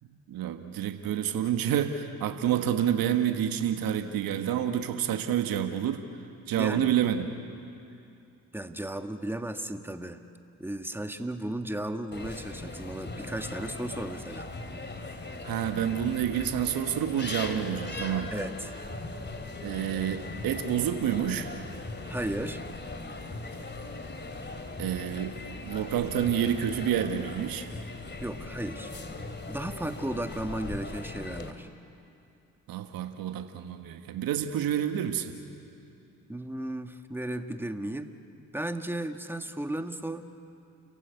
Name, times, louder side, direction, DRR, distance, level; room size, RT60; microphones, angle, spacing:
voice 1, 0.3-6.0 6.5-7.3 15.4-18.3 19.6-21.6 24.8-25.3 25.6-27.7 32.7-35.3, right 10 dB, 70° right, 7 dB, 1.5 m, -28 dB
voice 2, 6.6-6.9 8.5-10.2 10.6-14.5 18.3-18.7 22.1-22.6 28.2-28.9 29.5-31.7 36.3-38.1 38.5-40.2, right 1 dB, 5° right, 7 dB, 1.8 m, -35 dB
sound 1, 12.1-31.5, left 2 dB, 30° left, 2.9 m, -39 dB
29.5 x 15.5 x 9.5 m, 2.6 s
hypercardioid pair, 50°, 37 cm